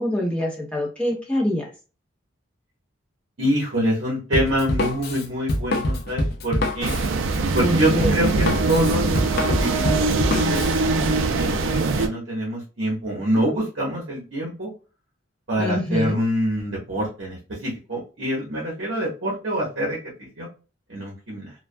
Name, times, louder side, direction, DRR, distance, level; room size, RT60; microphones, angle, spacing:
voice 1, 0.0-1.7 7.6-8.1 15.6-16.2, left 1 dB, 5° left, -3 dB, 0.7 m, -25 dB
voice 2, 3.4-7.0 7.5-10.1 10.5-14.7 15.5-20.5 20.9-21.5, equal, 60° right, -3 dB, 0.8 m, -26 dB
Drum kit, 4.3-10.8, left 1 dB, 50° left, 0.5 m, -25 dB
sound 1, 6.8-12.1, right 3 dB, 75° right, 0.4 m, -22 dB
2.3 x 2.2 x 2.5 m, 0.34 s
head